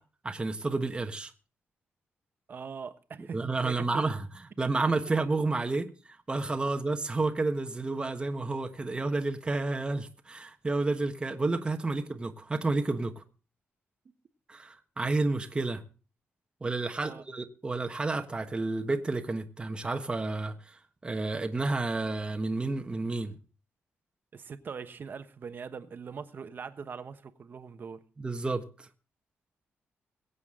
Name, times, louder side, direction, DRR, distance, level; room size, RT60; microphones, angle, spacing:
voice 1, 0.2-1.3 3.3-4.2 4.6-5.9 6.3-13.2 14.5-15.8 16.6-23.4 28.2-28.9, right 3 dB, 20° right, 1.3 m, -30 dB
voice 2, 2.5-4.1 5.1-5.2 11.9-12.0 17.0-17.2 24.3-28.0, right 6 dB, 50° right, 1.2 m, -42 dB
22.0 x 8.4 x 3.7 m
cardioid pair, 110°, 4 cm